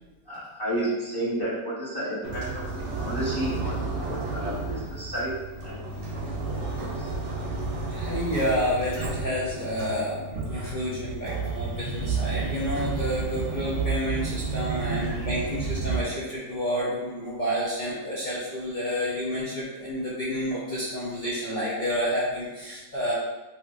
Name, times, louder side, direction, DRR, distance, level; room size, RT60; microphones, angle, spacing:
voice 1, 0.2-2.7 2.9-5.8 6.1-7.2, right 1 dB, 20° left, -10 dB, 0.7 m, -32 dB
sound 1, 2.2-16.0, right 4 dB, 65° right, 0.8 m, -31 dB
voice 2, 7.8-23.1, equal, 70° left, -7 dB, 0.4 m, -29 dB
2.9 x 2.9 x 2.4 m, 1.1 s
omnidirectional pair, 1.5 m